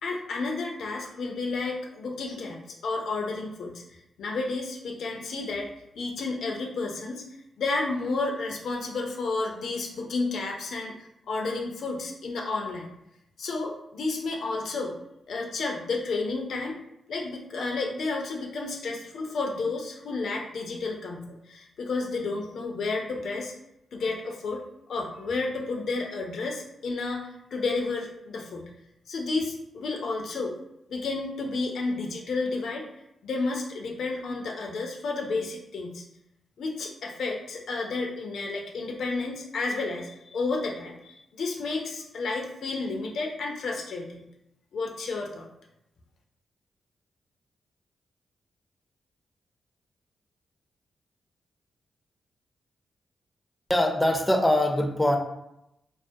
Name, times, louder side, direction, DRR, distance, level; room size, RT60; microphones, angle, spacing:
voice 1, 0.0-3.8 4.2-5.7 5.9-7.2 7.6-10.9 11.3-12.9 13.4-15.0 15.3-16.8 17.1-23.5 23.9-24.6 24.9-28.7 29.1-30.5 30.9-32.9 33.2-36.0 36.6-44.2 44.7-45.4, left 3 dB, 75° left, 1 dB, 0.4 m, -31 dB
voice 2, 53.7-55.2, left 1 dB, 10° left, 3 dB, 0.4 m, -22 dB
2.3 x 2.1 x 2.6 m, 0.82 s
cardioid pair, 60°, 0 cm